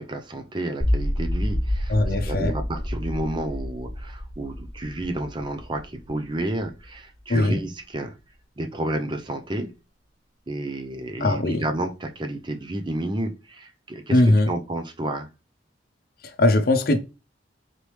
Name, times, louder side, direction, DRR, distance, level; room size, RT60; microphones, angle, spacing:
voice 1, 0.0-8.1 8.6-9.7 10.5-15.3, right 1 dB, 25° right, 0.5 m, -31 dB
sound 1, 0.8-6.9, equal, 15° left, 1.4 m, -29 dB
voice 2, 1.9-2.5 7.3-7.6 11.2-11.7 14.1-14.5 16.2-17.0, left 1 dB, 50° left, 0.6 m, -20 dB
4.1 x 3.3 x 3.0 m
head